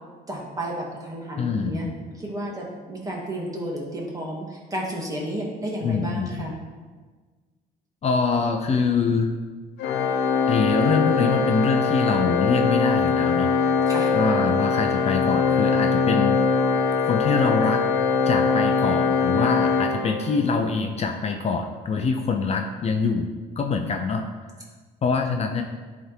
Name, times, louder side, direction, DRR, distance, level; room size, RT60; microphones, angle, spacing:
voice 1, 0.3-1.8 2.2-6.5 13.9-14.1, right 1 dB, 20° right, -3 dB, 2.1 m, -32 dB
voice 2, 1.4-2.0 5.8-6.5 8.0-9.3 10.5-13.5 14.1-16.4 17.1-17.8 18.2-23.3 23.6-24.2 25.0-25.6, left 5 dB, 40° left, 4 dB, 0.6 m, -24 dB
Organ, 9.8-20.6, left 5 dB, 90° left, 0.8 m, -22 dB
11.0 x 3.7 x 4.5 m, 1.4 s
cardioid pair, 110°, 17 cm